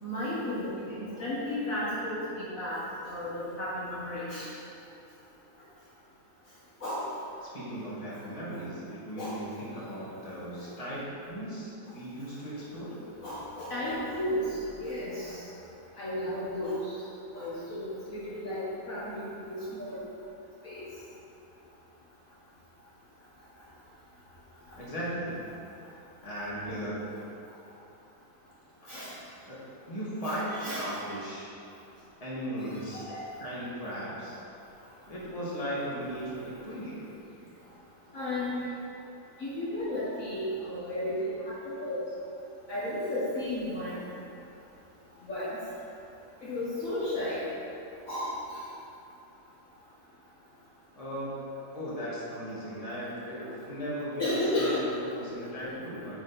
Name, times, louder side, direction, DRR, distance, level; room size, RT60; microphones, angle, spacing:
voice 1, 0.0-2.8 3.0-4.5 6.8-7.1 9.2-9.4 13.2-15.4 16.0-16.8 17.3-20.0 20.6-20.8 28.9-29.1 30.2-30.9 32.9-33.2 38.1-38.5 39.4-41.5 41.8-42.0 42.7-44.0 45.3-45.5 46.4-47.4 48.1-48.6 54.2-54.8, left 1 dB, 50° left, -9 dB, 2.0 m, -33 dB
voice 2, 7.4-13.0 24.7-25.4 26.2-27.1 29.5-29.6 29.9-31.5 32.2-33.1 33.4-34.4 35.1-37.0 51.0-51.4 51.7-54.3 54.6-56.2, equal, 20° left, -8 dB, 2.4 m, -37 dB
9.6 x 7.5 x 4.4 m, 2.7 s
omnidirectional pair, 1.9 m